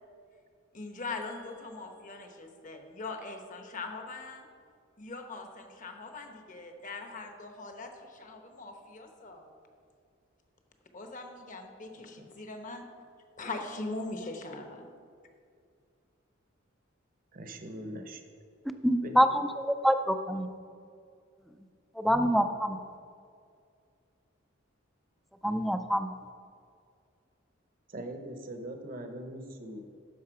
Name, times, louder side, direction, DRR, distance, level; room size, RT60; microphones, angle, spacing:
voice 1, 0.7-4.5 5.0-9.5 10.9-12.9 13.4-14.9, left 3 dB, 40° left, 4 dB, 1.0 m, -41 dB
voice 2, 17.3-18.2 19.0-19.2 27.9-29.8, right 1 dB, 45° right, 6 dB, 0.8 m, -41 dB
voice 3, 18.8-20.5 22.0-22.8 25.4-26.1, equal, ahead, 8 dB, 0.4 m, -26 dB
10.5 x 6.5 x 4.8 m, 2.3 s
head